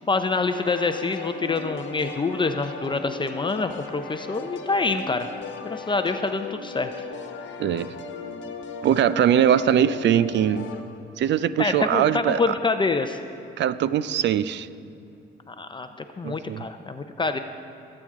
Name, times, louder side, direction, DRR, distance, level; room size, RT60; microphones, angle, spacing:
voice 1, 0.1-5.3 5.6-6.9 11.6-13.2 15.5-15.9 16.2-17.4, left 3 dB, 25° left, 8 dB, 0.6 m, -26 dB
sound 1, 0.5-10.8, left 4 dB, 75° left, 1.1 m, -37 dB
voice 2, 7.6-7.9 8.8-10.7 11.2-12.5 13.6-14.7 16.2-16.6, right 9 dB, 65° right, 15 dB, 0.5 m, -21 dB
22.0 x 8.8 x 3.7 m, 2.9 s
cardioid pair, 90°, 20 cm